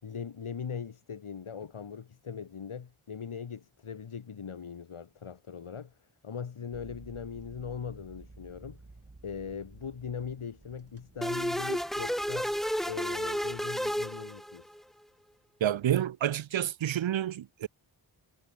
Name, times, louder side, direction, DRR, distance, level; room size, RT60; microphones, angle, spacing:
voice 1, 0.0-8.8 9.2-12.5 12.9-14.8, left 6 dB, 75° left, 7.0 m, -40 dB
sound 1, 6.7-14.2, right 2 dB, 30° right, 7.0 m, -54 dB
sound 2, 11.2-14.8, equal, ahead, 1.2 m, -32 dB
voice 2, 15.6-17.7, right 11 dB, 65° right, 0.8 m, -29 dB
cardioid pair, 65°, 49 cm